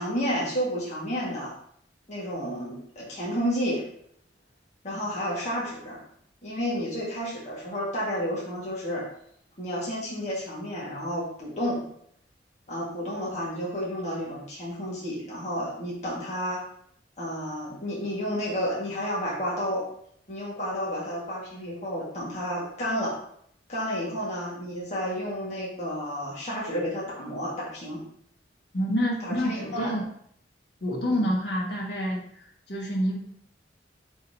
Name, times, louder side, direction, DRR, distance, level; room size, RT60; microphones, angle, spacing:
voice 1, 0.0-1.5 2.1-3.8 4.8-6.0 6.4-9.0 9.6-11.8 12.7-16.6 17.2-19.8 20.3-23.2 23.7-28.0 29.2-29.9 31.1-31.3, equal, 40° left, -6 dB, 1.7 m, -31 dB
voice 2, 28.7-30.0 30.8-33.3, equal, 70° left, -3 dB, 1.5 m, -28 dB
9.8 x 3.9 x 2.8 m, 0.68 s
head